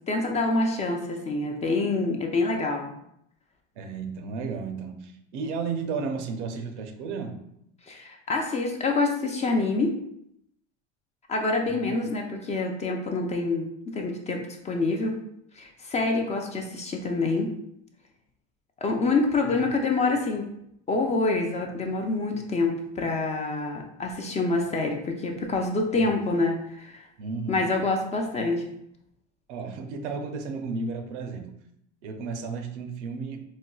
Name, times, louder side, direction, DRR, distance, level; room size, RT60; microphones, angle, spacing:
voice 1, 0.1-2.9 7.9-10.0 11.3-15.2 15.6-17.5 18.8-20.6 20.9-27.0 27.5-28.7, left 3 dB, 20° left, 2 dB, 0.4 m, -26 dB
voice 2, 3.7-7.4 11.7-11.9 25.9-26.2 27.2-27.7 29.5-31.5 32.0-33.4, right 4 dB, 90° right, 5 dB, 0.6 m, -33 dB
4.1 x 2.2 x 2.3 m, 0.75 s
supercardioid pair, 110°, 34 cm